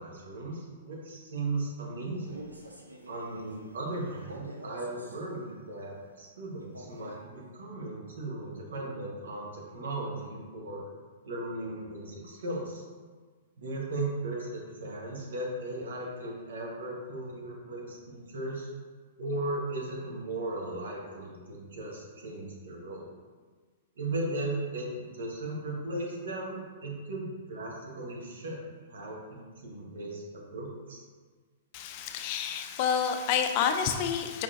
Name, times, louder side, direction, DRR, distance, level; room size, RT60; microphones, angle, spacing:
voice 1, 0.0-2.4 3.1-10.8 11.2-12.8 13.6-18.7 19.2-23.1 24.0-28.6 28.9-30.2 30.5-31.0, right 2 dB, 65° right, -2 dB, 1.0 m, -37 dB
Male speech man speaking, 2.1-5.2 6.6-7.2, right 1 dB, 90° right, 0.5 m, -47 dB
voice 2, 31.7-34.4, left 7 dB, 45° left, 6 dB, 0.3 m, -29 dB
4.9 x 3.7 x 2.5 m, 1.5 s
figure-of-eight pair, 105°, 0 cm